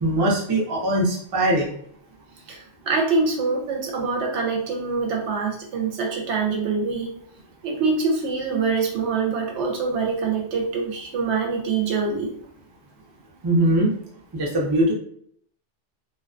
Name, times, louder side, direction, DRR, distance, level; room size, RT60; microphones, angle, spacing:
voice 1, 0.0-1.8 13.4-13.9 14.3-14.9, right 1 dB, 30° right, -3 dB, 0.4 m, -21 dB
voice 2, 2.5-7.1 7.6-12.4, right 4 dB, 70° right, 1 dB, 0.8 m, -25 dB
2.4 x 2.2 x 2.4 m, 0.63 s
omnidirectional pair, 1.2 m